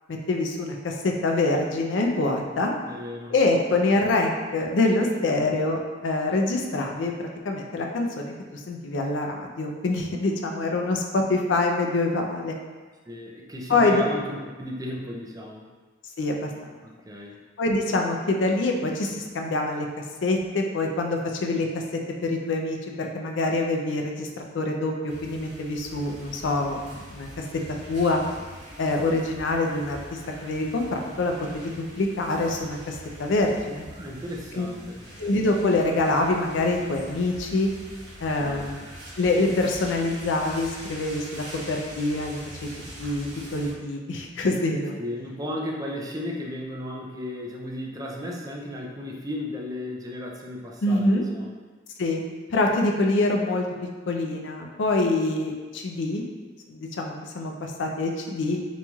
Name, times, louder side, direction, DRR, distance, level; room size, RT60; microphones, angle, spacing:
voice 1, 0.1-2.8 3.3-7.1 7.4-12.6 13.7-14.0 16.2-16.5 17.6-19.9 20.2-21.8 22.2-27.3 27.9-28.2 28.8-33.8 34.5-34.7 35.2-37.7 38.2-38.8 39.2-42.4 43.0-45.0 50.8-51.3 52.0-52.2 52.5-53.7 54.1-56.2 56.7-58.6, left 2 dB, 90° left, 2 dB, 0.5 m, -25 dB
voice 2, 2.9-3.3 13.1-15.7 16.8-17.4 33.9-35.0 38.4-38.8 45.0-51.5, left 1 dB, 20° right, -2 dB, 0.4 m, -35 dB
sound 1, 25.1-43.7, right 1 dB, 60° right, 1.2 m, -43 dB
4.0 x 3.0 x 2.3 m, 1.4 s
head